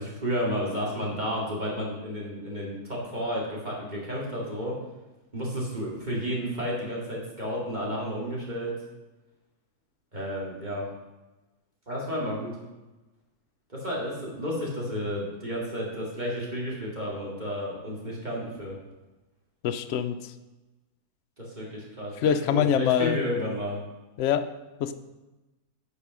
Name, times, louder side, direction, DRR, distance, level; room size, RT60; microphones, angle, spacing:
voice 1, 0.0-4.8 5.3-8.7 10.1-10.9 11.9-12.6 13.7-18.7 21.4-23.8, equal, 30° right, -4 dB, 2.4 m, -32 dB
voice 2, 19.6-20.2 22.2-23.2 24.2-24.4 24.8-24.9, left 9 dB, 65° left, 9 dB, 0.8 m, -24 dB
8.7 x 4.8 x 6.1 m, 1.1 s
omnidirectional pair, 1.6 m